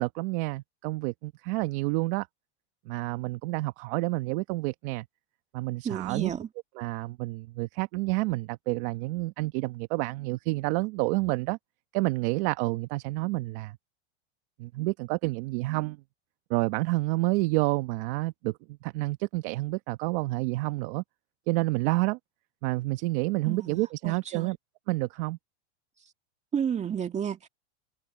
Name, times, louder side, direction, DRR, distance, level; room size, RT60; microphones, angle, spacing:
voice 1, 0.0-2.3 2.9-5.1 5.5-6.3 6.8-11.6 11.9-13.8 14.6-16.0 16.5-21.0 21.5-22.2 22.6-24.6 24.9-25.4, right 22 dB, 55° right, 1.1 m, -29 dB
voice 2, 5.8-6.5 23.4-24.5 26.0-26.1 26.5-27.5, right 8 dB, 20° right, 2.1 m, -32 dB
supercardioid pair, 140°, 34 cm